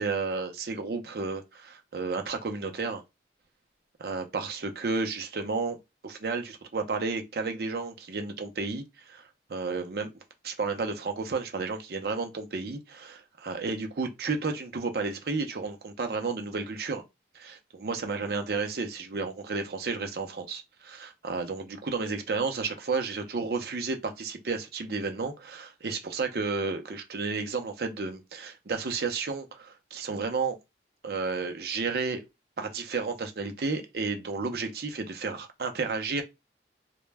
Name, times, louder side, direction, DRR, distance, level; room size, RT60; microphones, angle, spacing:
voice 1, 0.0-3.0 4.0-5.8 6.0-10.1 10.4-17.0 17.3-30.6 31.0-32.2 32.6-36.2, right 4 dB, 55° right, 0.5 m, -32 dB
2.1 x 2.0 x 3.3 m
head